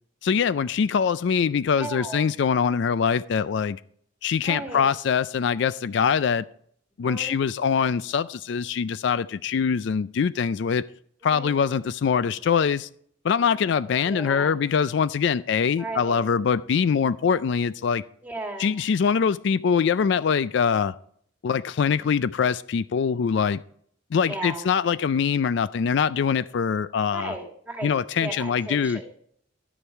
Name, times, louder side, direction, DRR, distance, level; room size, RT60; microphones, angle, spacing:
voice 1, 0.2-3.8 4.2-6.4 7.0-10.8 11.2-12.9 13.2-18.0 18.6-21.0 21.4-23.6 24.1-27.3 27.8-29.0, left 6 dB, 60° left, 0.4 m, -23 dB
voice 2, 1.7-2.3 4.4-4.9 7.0-7.4 11.2-11.7 12.1-12.3 14.0-14.5 15.8-16.2 18.2-18.7 21.9-22.0 24.2-24.7 27.1-29.2, right 2 dB, 10° right, 2.1 m, -36 dB
12.5 x 10.0 x 4.6 m
head